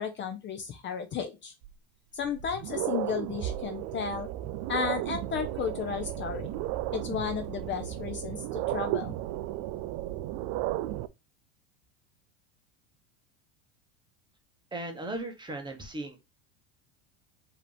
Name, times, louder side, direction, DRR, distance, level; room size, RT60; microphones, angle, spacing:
voice 1, 0.0-1.5 2.1-4.3 4.7-6.5 6.9-9.1, left 7 dB, 30° left, 7 dB, 0.6 m, -33 dB
sound 1, 1.6-1.7 2.3-11.1, right 14 dB, 50° right, 0.4 m, -34 dB
voice 2, 14.7-16.2, right 1 dB, 15° right, 4 dB, 1.1 m, -37 dB
4.9 x 3.0 x 3.3 m, 0.24 s
supercardioid pair, 115°, 36 cm